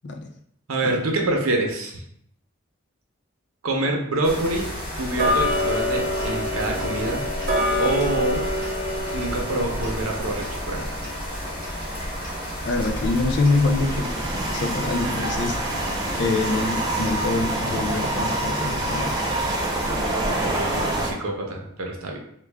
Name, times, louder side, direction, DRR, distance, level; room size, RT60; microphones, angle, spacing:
voice 1, 0.7-2.0 3.6-4.7 5.0-7.3 7.8-8.5 9.1-10.8 20.4-22.2, right 2 dB, 85° right, 1 dB, 0.7 m, -26 dB
sound 1, 4.2-21.1, equal, 25° left, 1.1 m, -32 dB
Tick-tock, 5.2-16.0 16.4-16.5 17.1-17.2 17.7-17.8 18.3-18.4 18.9-19.0 19.5-19.6 20.1-20.2, left 1 dB, 50° right, 0.8 m, -29 dB
sound 2, 9.6-21.1, right 2 dB, 20° right, 0.4 m, -28 dB
voice 2, 12.6-14.1 14.5-19.2, left 3 dB, 55° left, 5 dB, 0.4 m, -25 dB
3.2 x 2.3 x 3.4 m, 0.72 s
head